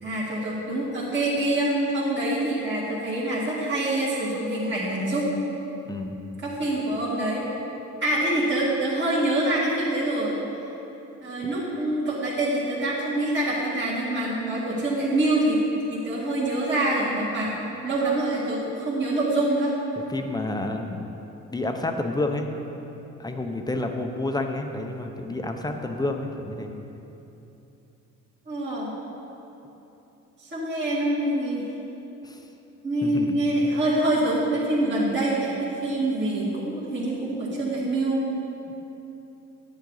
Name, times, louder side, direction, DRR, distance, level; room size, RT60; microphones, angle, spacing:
voice 1, 0.0-5.3 6.4-7.4 8.0-10.4 11.2-15.6 15.9-17.6 17.8-19.7 28.5-28.9 30.4-31.7 32.8-38.2, right 1 dB, 40° right, -8 dB, 2.2 m, -25 dB
voice 2, 5.9-6.2 20.1-21.1 21.5-22.5 23.2-26.7 32.2-32.4 33.0-33.4 38.7-38.8, left 2 dB, 15° left, 4 dB, 0.8 m, -29 dB
10.0 x 8.9 x 4.0 m, 3.0 s
cardioid pair, 90°, 30 cm